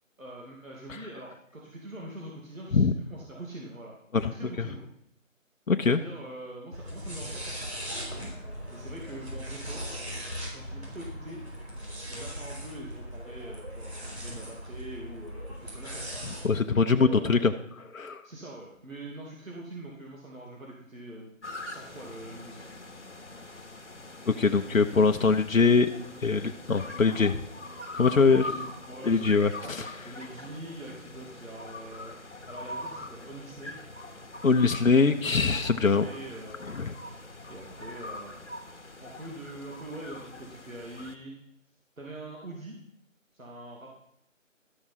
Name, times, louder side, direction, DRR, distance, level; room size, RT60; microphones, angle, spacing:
voice 1, 0.2-3.9 4.2-4.8 5.9-7.7 8.7-9.9 10.4-11.4 12.1-16.0 16.8-17.5 18.2-22.7 28.1-32.2 32.5-33.8 36.0-36.7 37.5-38.6 39.0-41.4 42.0-42.8 43.3-43.9, right 1 dB, 80° right, -2 dB, 2.7 m, -44 dB
voice 2, 4.1-4.7 5.7-6.0 16.4-17.5 17.9-18.2 24.3-25.9 26.2-27.4 27.9-28.5 29.0-29.9 34.4-36.1 36.8-36.9, left 4 dB, 80° left, 6 dB, 0.9 m, -23 dB
sound 1, 6.7-16.5, equal, 50° right, 4.4 m, -39 dB
sound 2, 21.4-41.2, left 2 dB, 60° left, 1.2 m, -43 dB
12.5 x 6.1 x 5.7 m, 0.71 s
figure-of-eight pair, 180°, 40 cm